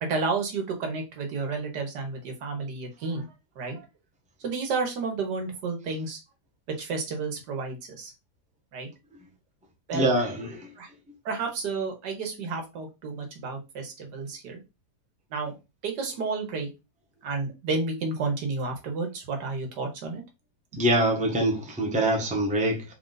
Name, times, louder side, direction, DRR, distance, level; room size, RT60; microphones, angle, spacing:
voice 1, 0.0-3.3 3.6-3.9 4.4-6.2 6.7-8.1 8.7-8.9 9.9-10.1 10.8-10.9 11.3-14.6 15.3-15.6 15.8-16.7 17.2-20.2, right 4 dB, 80° right, 1.7 m, -31 dB
voice 2, 9.9-10.5 20.8-22.8, right 1 dB, 5° right, 0.6 m, -24 dB
4.0 x 2.5 x 3.9 m
omnidirectional pair, 1.8 m